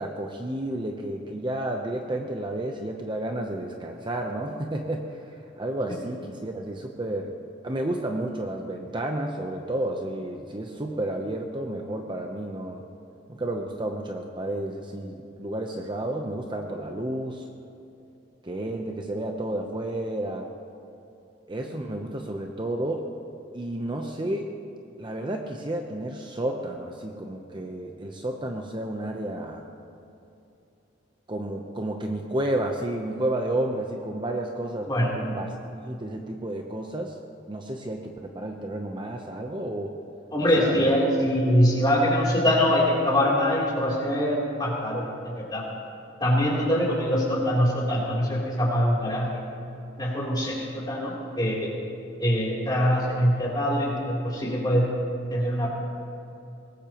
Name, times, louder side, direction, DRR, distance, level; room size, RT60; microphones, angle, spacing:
voice 1, 0.0-7.3 7.6-12.8 13.3-17.5 18.4-20.5 21.5-23.1 23.5-24.5 25.0-29.6 31.3-35.5 35.8-37.2 37.5-40.0 40.4-40.9, right 1 dB, 25° right, 2 dB, 0.8 m, -31 dB
voice 2, 40.3-45.6 46.2-49.3 50.0-51.7 52.2-54.9 55.3-55.7, equal, 20° left, -4 dB, 3.4 m, -23 dB
22.0 x 18.5 x 3.0 m, 2.7 s
head